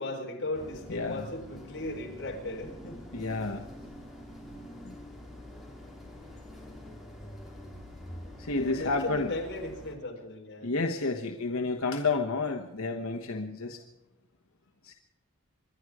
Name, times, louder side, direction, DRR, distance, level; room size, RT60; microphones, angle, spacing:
voice 1, 0.0-3.0 8.4-10.7, left 2 dB, 50° left, 0 dB, 4.2 m, -37 dB
sound 1, 0.5-10.0, left 1 dB, ahead, 3.0 m, -46 dB
voice 2, 0.9-1.3 3.1-3.6 4.8-5.0 8.4-9.3 10.6-13.8 14.8-14.9, left 3 dB, 80° left, 4 dB, 1.2 m, -30 dB
26.0 x 11.0 x 4.9 m, 1.0 s
head